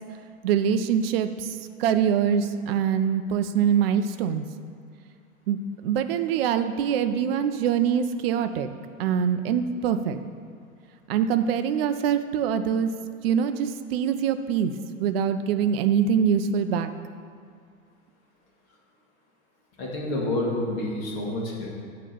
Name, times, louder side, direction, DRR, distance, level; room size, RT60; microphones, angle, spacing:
voice 1, 0.4-4.4 5.5-8.7 9.0-10.2 11.1-12.9 13.2-14.7 15.0-16.9, right 8 dB, 45° right, 9 dB, 0.5 m, -24 dB
voice 2, 19.8-21.7, left 1 dB, 35° left, -3 dB, 2.1 m, -28 dB
8.3 x 3.8 x 6.8 m, 2.2 s
figure-of-eight pair, 105°, 43 cm